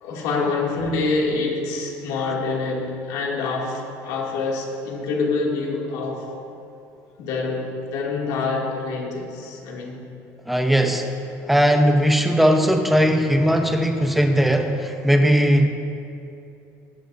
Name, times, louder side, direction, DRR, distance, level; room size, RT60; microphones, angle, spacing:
voice 1, 0.0-6.4 7.2-10.0, left 3 dB, 80° left, -2 dB, 2.6 m, -26 dB
voice 2, 10.5-11.1 11.4-15.7, equal, ahead, 4 dB, 0.9 m, -18 dB
18.0 x 13.0 x 2.7 m, 2.6 s
cardioid pair, 150°, 7 cm